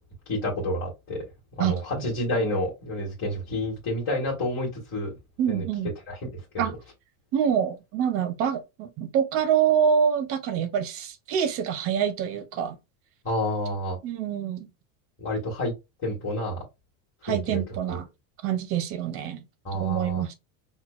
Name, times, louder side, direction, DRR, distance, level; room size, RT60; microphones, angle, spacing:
voice 1, 0.2-1.2 1.5-5.1 5.5-5.7 6.1-6.7 13.2-14.0 15.2-15.7 16.0-16.6 17.3-17.6 17.9-18.0 19.6-20.2, left 1 dB, 25° left, 1.4 m, -29 dB
voice 2, 5.4-5.9 6.6-6.7 7.3-12.8 14.0-14.7 17.2-18.1 18.4-19.4 19.7-20.3, right 8 dB, 35° right, 0.5 m, -26 dB
5.8 x 2.2 x 2.3 m
cardioid pair, 165°, 43 cm